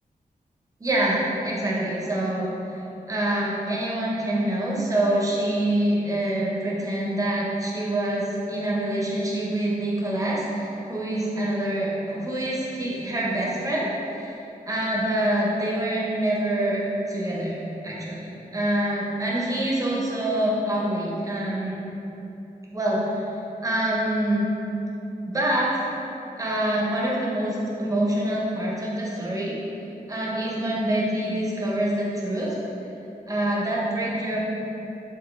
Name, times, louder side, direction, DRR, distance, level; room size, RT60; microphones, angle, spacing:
voice 1, 0.8-2.5 3.1-14.4 14.7-16.8 17.1-21.9 22.7-23.2 23.6-24.5 25.3-25.9 26.4-29.6 30.1-32.6 33.3-34.4, right 1 dB, 25° right, -5 dB, 0.5 m, -26 dB
3.7 x 3.0 x 2.4 m, 2.9 s
wide cardioid pair, 155°, 15 cm